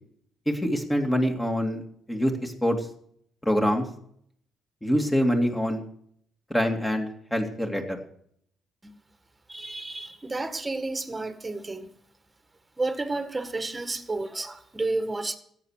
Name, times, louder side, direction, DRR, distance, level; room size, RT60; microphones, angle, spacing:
voice 1, 0.5-1.8 2.1-2.8 3.4-3.9 4.8-5.8 6.5-8.0, equal, 10° left, 2.5 m, -25 dB
voice 2, 9.5-11.9 12.8-15.4, right 2 dB, 20° right, 1.8 m, -31 dB
13.5 x 8.9 x 6.5 m
cardioid pair, 90°, 0 cm